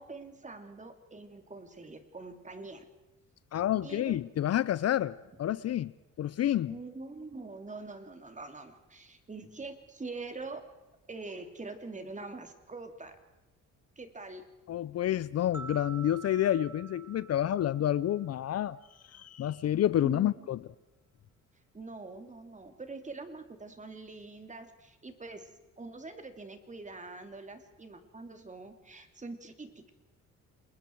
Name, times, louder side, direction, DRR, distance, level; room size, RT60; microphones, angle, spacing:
voice 1, 0.0-2.9 3.8-4.2 6.7-10.7 11.1-13.2 14.0-14.4 20.0-20.4 21.7-25.5 25.8-29.9, right 3 dB, 25° right, 2.9 m, -44 dB
voice 2, 3.5-5.9 6.2-6.8 14.7-18.8 19.1-20.6, left 11 dB, 55° left, 0.6 m, -29 dB
sound 1, 15.5-18.7, right 6 dB, 5° right, 2.6 m, -48 dB
28.5 x 21.0 x 4.7 m
cardioid pair, 90°, 30 cm